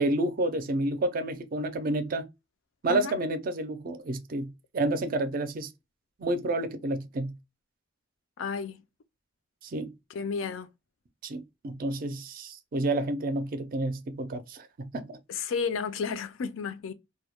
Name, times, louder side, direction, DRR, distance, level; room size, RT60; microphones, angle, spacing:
voice 1, 0.0-2.3 2.8-5.7 6.2-7.4 9.6-9.9 11.2-15.2, right 2 dB, 45° right, 0.4 m, -30 dB
voice 2, 8.4-8.8 10.1-10.7 15.3-16.9, left 5 dB, 85° left, 0.4 m, -32 dB
2.2 x 2.1 x 2.8 m
head